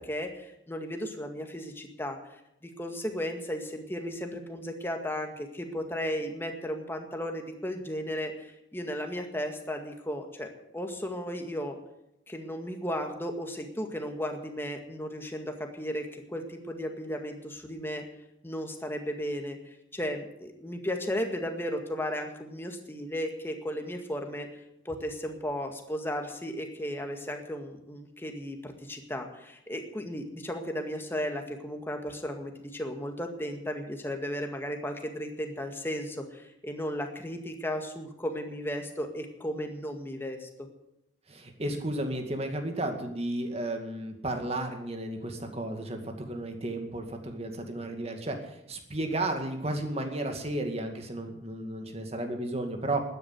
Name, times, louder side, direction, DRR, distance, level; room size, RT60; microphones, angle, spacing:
voice 1, 0.0-10.5 10.7-11.8 12.3-18.0 18.4-40.7, equal, 15° left, 4 dB, 1.9 m, -35 dB
voice 2, 41.3-53.0, right 1 dB, 35° right, 5 dB, 2.2 m, -33 dB
12.5 x 10.0 x 9.6 m, 0.83 s
head